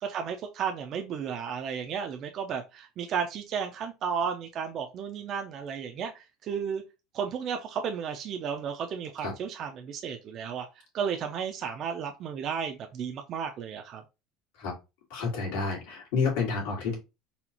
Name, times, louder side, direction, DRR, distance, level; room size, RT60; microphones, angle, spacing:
voice 1, 0.0-6.8 7.1-10.7 10.9-14.0, right 7 dB, 35° right, 5 dB, 0.4 m, -33 dB
voice 2, 15.1-17.0, left 5 dB, 90° left, -2 dB, 1.9 m, -29 dB
4.1 x 2.3 x 2.8 m, 0.26 s
cardioid pair, 160°, 0 cm